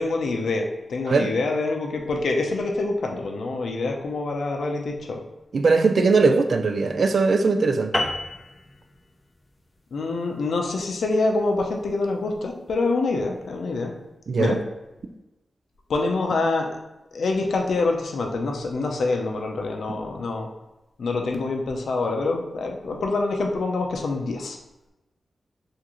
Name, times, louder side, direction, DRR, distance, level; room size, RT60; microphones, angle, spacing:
voice 1, 0.0-5.2 9.9-13.9 14.4-14.5 15.9-16.7 17.1-20.5 21.0-24.6, left 3 dB, 80° left, 0.5 m, -26 dB
voice 2, 5.5-8.0 14.3-14.6, right 4 dB, 65° right, 0.3 m, -20 dB
sound 1, 7.9-12.7, left 1 dB, 20° left, 0.4 m, -33 dB
3.7 x 2.5 x 3.0 m
wide cardioid pair, 90°, 0 cm